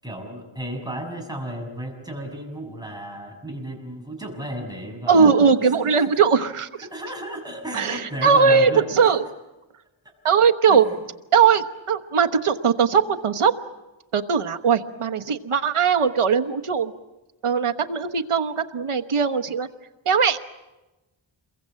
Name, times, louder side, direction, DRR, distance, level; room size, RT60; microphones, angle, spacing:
voice 1, 0.0-6.1 6.8-8.9 10.0-10.1 10.7-11.0, right 1 dB, 10° right, 1 dB, 6.5 m, -34 dB
voice 2, 5.1-6.7 7.7-9.2 10.2-10.8 11.3-13.5 14.1-16.9 17.4-19.7 20.1-20.5, right 6 dB, 85° right, 8 dB, 1.2 m, -19 dB
28.0 x 22.5 x 7.6 m, 1.0 s
wide cardioid pair, 90°, 49 cm